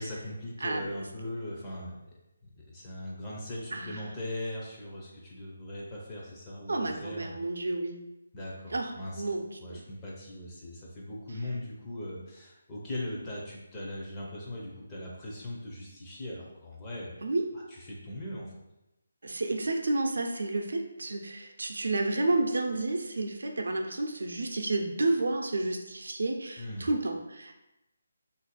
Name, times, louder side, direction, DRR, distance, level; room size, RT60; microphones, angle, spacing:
voice 1, 0.0-2.1 2.6-7.4 8.3-9.2 9.6-17.2 17.5-18.5 26.6-26.9, left 1 dB, 15° left, -4 dB, 0.5 m, -39 dB
voice 2, 6.7-8.0 8.7-8.9 9.2-9.4 17.2-17.4 19.2-27.5, right 2 dB, 80° right, 3 dB, 0.5 m, -30 dB
2.6 x 2.3 x 4.1 m, 0.93 s
hypercardioid pair, 175°, 0 cm